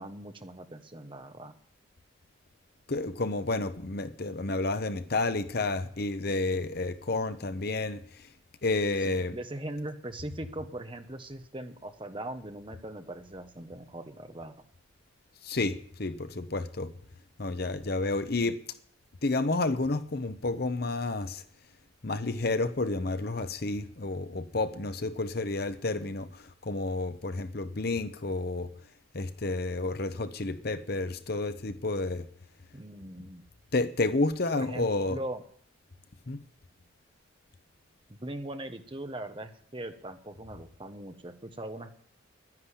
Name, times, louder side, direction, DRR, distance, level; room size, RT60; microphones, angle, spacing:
voice 1, 0.0-1.6 9.0-14.6 32.7-33.4 34.5-35.4 38.1-41.9, right 1 dB, 25° right, 1.1 m, -40 dB
voice 2, 2.9-8.0 8.6-9.4 15.4-16.9 17.4-18.6 19.2-21.4 22.0-26.3 26.7-28.7 29.1-32.3 33.7-35.2 36.3-36.4, left 2 dB, 50° left, 0.9 m, -30 dB
11.0 x 10.5 x 9.9 m
head